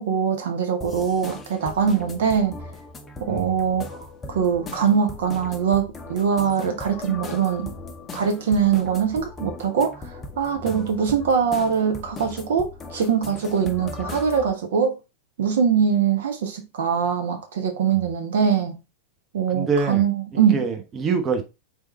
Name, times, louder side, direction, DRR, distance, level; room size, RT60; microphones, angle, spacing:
voice 1, 0.0-2.6 3.2-7.7 8.1-15.0 15.4-18.8 19.3-20.6, right 7 dB, 60° right, 0.6 m, -22 dB
sound 1, 0.8-14.5, left 3 dB, 20° left, 0.6 m, -38 dB
voice 2, 3.3-3.6 10.6-10.9 19.5-20.0 20.3-21.4, right 5 dB, 25° right, 0.8 m, -26 dB
4.1 x 3.5 x 3.0 m
figure-of-eight pair, 90°, 0 cm